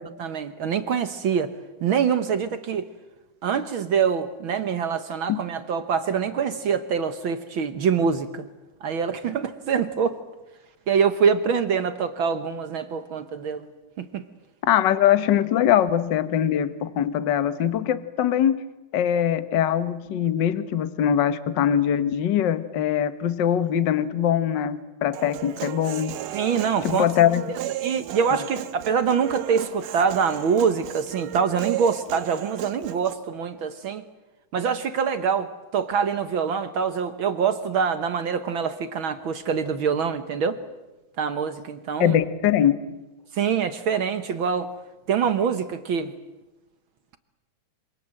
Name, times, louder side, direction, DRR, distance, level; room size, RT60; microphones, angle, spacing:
voice 1, 0.2-1.5 1.8-2.9 3.4-8.5 8.8-10.2 10.9-13.7 14.0-14.2 26.3-27.0 27.8-34.0 34.5-40.6 41.2-42.2 43.3-44.7 45.1-46.1, right 6 dB, 65° right, 10 dB, 1.3 m, -25 dB
voice 2, 14.7-18.7 18.9-26.1 26.8-27.4 42.0-42.8, left 10 dB, 60° left, 12 dB, 1.2 m, -22 dB
Human voice, 25.1-33.1, right 12 dB, 90° right, 2.7 m, -34 dB
27.5 x 26.0 x 7.7 m, 1.1 s
omnidirectional pair, 3.7 m